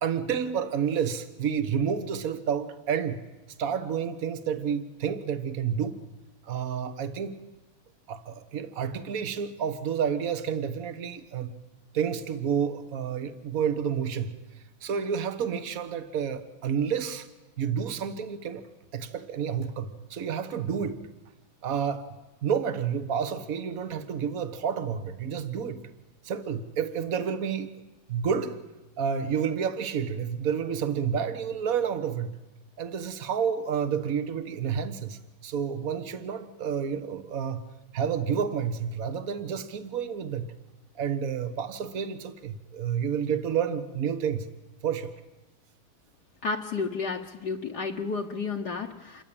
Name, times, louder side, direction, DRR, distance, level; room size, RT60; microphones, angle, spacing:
voice 1, 0.0-3.2 3.6-6.0 6.5-7.3 8.1-11.6 11.9-14.4 14.8-17.3 17.6-18.6 18.9-21.1 21.6-22.1 22.4-25.9 26.2-27.7 28.1-28.6 29.0-32.3 32.8-37.7 37.9-40.5 40.9-44.5 44.8-45.1, right 7 dB, 45° right, 1.6 m, -30 dB
voice 2, 46.4-49.2, left 4 dB, 55° left, 1.5 m, -32 dB
27.0 x 22.5 x 8.8 m
omnidirectional pair, 2.4 m